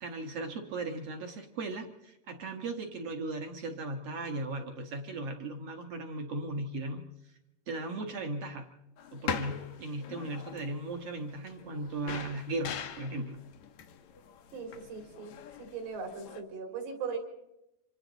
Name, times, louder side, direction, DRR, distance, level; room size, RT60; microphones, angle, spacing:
voice 1, 0.0-7.1 7.7-8.7 9.1-13.4, right 2 dB, 60° right, 4 dB, 1.7 m, -37 dB
sound 1, 9.0-16.4, left 7 dB, 85° left, 1.6 m, -42 dB
voice 2, 14.5-15.3 15.6-17.2, right 5 dB, 75° right, 3 dB, 5.4 m, -39 dB
27.0 x 26.0 x 4.0 m, 0.90 s
omnidirectional pair, 4.8 m